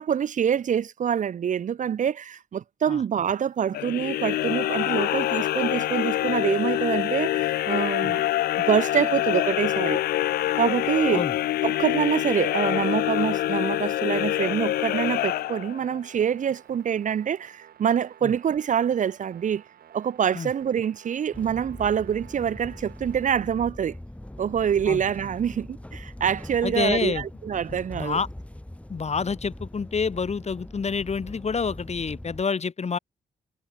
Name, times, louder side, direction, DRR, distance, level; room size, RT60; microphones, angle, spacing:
voice 1, 0.0-8.3 8.6-10.0 10.6-11.3 11.6-19.6 19.9-23.9 24.4-28.2, right 8 dB, 55° right, 0.6 m, -26 dB
sound 1, 3.7-16.0, left 14 dB, 75° left, 0.5 m, -25 dB
sound 2, 6.6-23.4, right 10 dB, 70° right, 5.0 m, -52 dB
sound 3, 21.3-32.4, left 1 dB, 10° left, 2.4 m, -41 dB
voice 2, 26.6-27.2 27.9-28.3 28.9-33.0, left 5 dB, 45° left, 1.8 m, -28 dB
hypercardioid pair, 45°, 16 cm